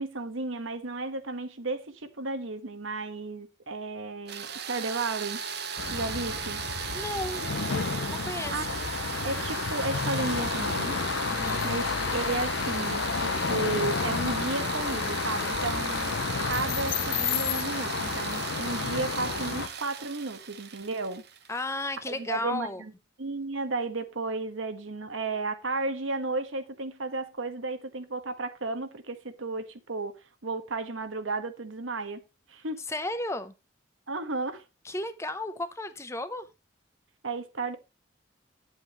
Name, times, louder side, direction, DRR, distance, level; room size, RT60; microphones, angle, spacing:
voice 1, 0.0-5.5 5.9-6.6 8.5-8.7 9.2-11.0 11.6-16.1 16.5-21.2 22.1-22.9 23.2-30.1 30.4-32.2 32.5-32.8 34.1-34.6 37.2-37.8, right 3 dB, 85° right, 1.3 m, -33 dB
sound 1, 4.3-22.0, right 7 dB, 55° right, 1.0 m, -37 dB
sound 2, 5.8-19.7, left 5 dB, 75° left, 0.7 m, -31 dB
voice 2, 6.9-7.4 8.1-8.8 11.2-11.7 21.5-22.8 32.9-33.5 34.8-36.5, left 1 dB, 15° left, 0.7 m, -34 dB
9.9 x 7.8 x 3.0 m
head